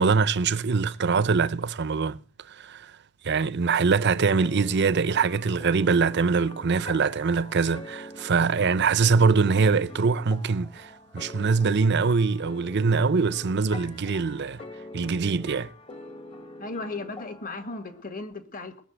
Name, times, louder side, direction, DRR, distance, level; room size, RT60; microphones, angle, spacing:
voice 1, 0.0-2.2 2.6-2.9 3.2-14.6 14.9-15.7, right 4 dB, 55° right, 0.6 m, -23 dB
sound 1, 4.3-18.0, left 1 dB, 25° left, 1.2 m, -44 dB
voice 2, 16.6-18.8, left 3 dB, 45° left, 1.8 m, -36 dB
20.0 x 6.8 x 8.1 m
head